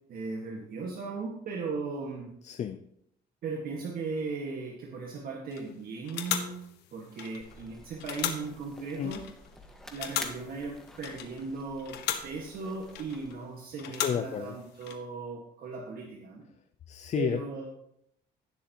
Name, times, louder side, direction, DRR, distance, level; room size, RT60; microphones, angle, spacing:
voice 1, 0.1-2.3 3.4-6.6 6.9-9.2 9.9-16.4 17.2-17.7, right 4 dB, 60° right, 0 dB, 1.8 m, -37 dB
voice 2, 2.4-2.8 9.0-9.2 14.0-14.5 16.9-17.4, left 8 dB, 45° left, 10 dB, 0.6 m, -31 dB
sound 1, 5.5-5.7 6.1-7.7 8.0-9.6 9.9-11.5 11.8-13.4 13.8-15.0, left 10 dB, 80° left, 1.3 m, -37 dB
sound 2, 7.4-13.4, equal, 5° left, 1.6 m, -50 dB
17.0 x 7.1 x 3.0 m, 0.75 s
cardioid pair, 110°, 17 cm